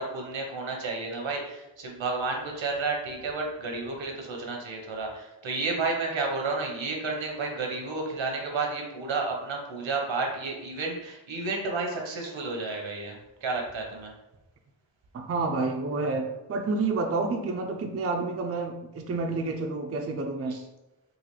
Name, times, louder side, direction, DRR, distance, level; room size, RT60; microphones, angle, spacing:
voice 1, 0.0-14.1 20.5-20.6, right 3 dB, 80° right, 1 dB, 0.9 m, -31 dB
voice 2, 15.1-20.6, right 3 dB, 35° right, 3 dB, 0.4 m, -29 dB
3.9 x 2.4 x 3.0 m, 0.97 s
wide cardioid pair, 90°, 45 cm